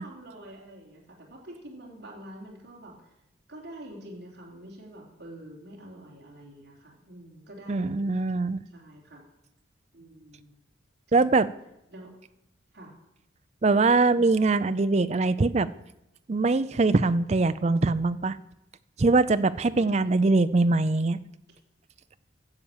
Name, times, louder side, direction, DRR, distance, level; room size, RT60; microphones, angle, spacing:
voice 1, 0.0-3.1 3.5-8.2 8.7-9.2 9.9-10.5 11.1-11.3 11.9-12.1 12.7-13.0 14.1-14.2 19.7-20.4, right 1 dB, 60° right, -3 dB, 3.4 m, -46 dB
voice 2, 7.7-8.6 11.1-11.5 13.6-15.7 16.3-18.4 19.0-21.2, right 3 dB, 35° right, 13 dB, 0.4 m, -22 dB
11.5 x 7.6 x 7.3 m, 0.86 s
head